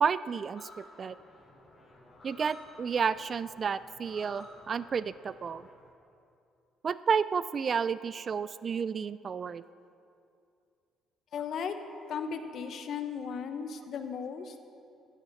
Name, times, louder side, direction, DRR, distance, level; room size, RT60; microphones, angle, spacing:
voice 1, 0.0-1.2 2.2-5.6 6.8-9.6, right 6 dB, 40° right, 16 dB, 0.3 m, -31 dB
sound 1, 0.6-5.7, left 2 dB, 30° left, 3.3 m, -54 dB
voice 2, 11.3-11.7 12.1-14.6, left 6 dB, 60° left, 8 dB, 1.0 m, -36 dB
14.0 x 14.0 x 4.1 m, 2.5 s
cardioid pair, 105°, 0 cm